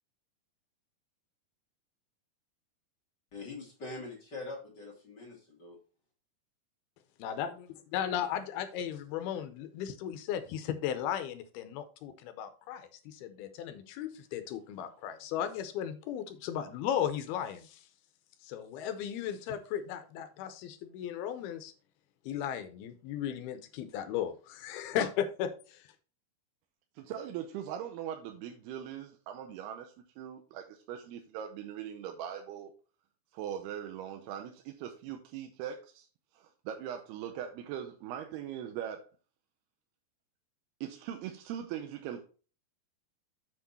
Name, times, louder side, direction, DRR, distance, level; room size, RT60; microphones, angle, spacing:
voice 1, 3.3-5.8, left 3 dB, 35° left, 2.2 m, -43 dB
voice 2, 7.2-7.5 7.9-17.8 18.4-21.7 22.3-25.8, left 9 dB, 85° left, 2.6 m, -36 dB
voice 3, 27.0-32.7 33.3-36.1 36.7-39.0 40.8-42.2, right 10 dB, 90° right, 2.7 m, -40 dB
7.5 x 6.1 x 4.2 m
omnidirectional pair, 4.6 m